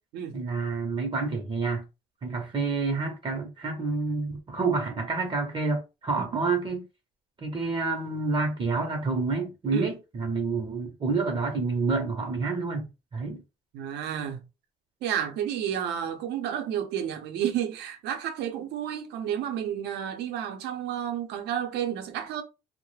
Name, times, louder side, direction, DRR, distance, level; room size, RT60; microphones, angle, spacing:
voice 1, 0.3-1.8 2.2-6.8 7.4-13.4, right 4 dB, 30° right, 0.6 m, -28 dB
voice 2, 13.7-14.5 15.0-22.4, right 9 dB, 80° right, 0.6 m, -31 dB
2.3 x 2.0 x 3.1 m
cardioid pair, 110°, 17 cm